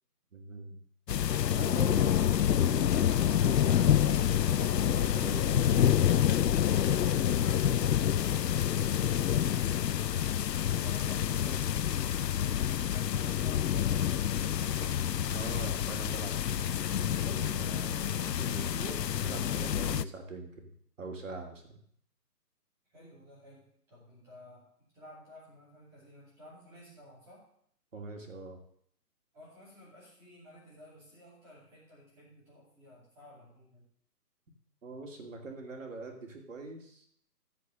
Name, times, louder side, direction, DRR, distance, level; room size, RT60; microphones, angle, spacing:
voice 1, 0.3-0.8 1.5-6.1 15.3-20.7 21.0-21.8 27.9-28.6 34.8-37.1, right 3 dB, 50° right, 3 dB, 2.7 m, -43 dB
sound 1, 1.1-20.0, left 10 dB, 85° left, 0.6 m, -28 dB
voice 2, 10.6-14.3 22.9-27.5 29.3-33.8, equal, 5° right, -8 dB, 2.4 m, -54 dB
sound 2, 17.4-18.8, left 5 dB, 50° left, 1.1 m, -50 dB
14.5 x 5.2 x 7.6 m, 0.64 s
hypercardioid pair, 170°, 48 cm